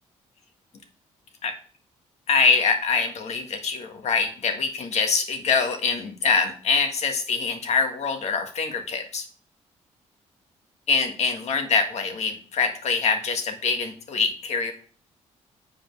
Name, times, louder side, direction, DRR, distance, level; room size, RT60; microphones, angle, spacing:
voice 1, 2.3-9.3 10.9-14.7, left 4 dB, 60° left, 5 dB, 1.6 m, -24 dB
7.6 x 5.1 x 4.6 m, 0.42 s
cardioid pair, 80°, 13 cm